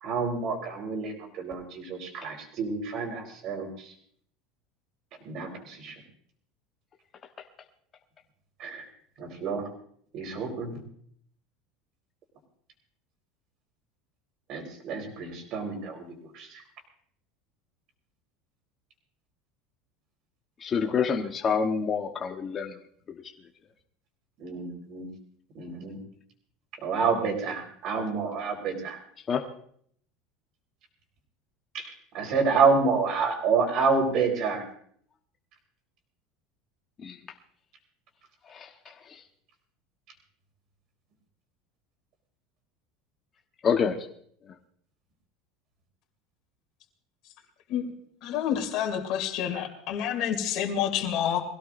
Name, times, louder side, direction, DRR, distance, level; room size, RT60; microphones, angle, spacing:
voice 1, 0.0-3.9 5.2-5.9 8.6-8.8 9.2-9.7 10.1-10.7 14.5-16.1 16.3-16.6 24.4-25.1 25.5-26.0 26.8-29.0 31.7-31.9 32.1-34.6, right 5 dB, 40° right, 4.2 m, -28 dB
voice 2, 20.6-22.8 23.1-23.2 29.3-29.4 37.0-37.2 38.5-38.7 39.0-39.2 43.6-44.1, left 6 dB, 25° left, 1.0 m, -27 dB
voice 3, 48.2-51.4, left 9 dB, 50° left, 2.7 m, -28 dB
23.5 x 16.5 x 2.6 m
cardioid pair, 160°, 0 cm